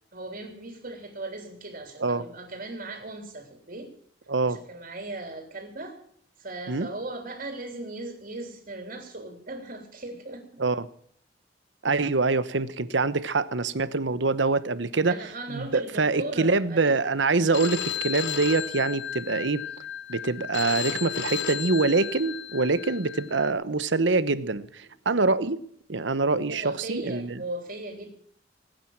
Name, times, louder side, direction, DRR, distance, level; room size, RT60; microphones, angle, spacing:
voice 1, 0.1-3.9 4.4-6.0 6.4-10.4 15.1-17.0 26.5-28.1, right 2 dB, 50° right, 4 dB, 3.4 m, -38 dB
voice 2, 4.3-4.6 6.7-6.9 10.6-10.9 11.8-15.2 15.5-19.6 20.1-25.6 25.9-27.4, right 3 dB, 85° right, 14 dB, 1.0 m, -25 dB
Telephone, 17.5-23.5, left 9 dB, 80° left, 1.1 m, -34 dB
20.0 x 9.3 x 7.2 m, 0.62 s
head